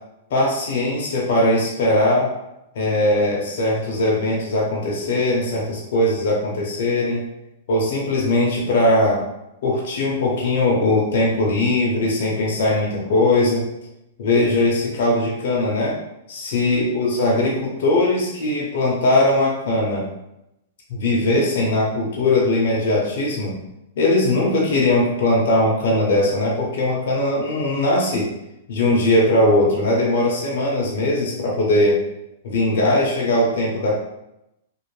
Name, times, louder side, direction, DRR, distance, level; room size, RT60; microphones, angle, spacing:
voice 1, 0.3-2.3 2.7-7.2 7.7-9.2 9.6-13.7 14.2-16.0 16.3-20.1 20.9-23.5 24.0-28.3 28.7-32.0 32.4-34.0, left 1 dB, 65° left, -3 dB, 0.7 m, -20 dB
2.5 x 2.0 x 3.1 m, 0.87 s
hypercardioid pair, 140°, 0 cm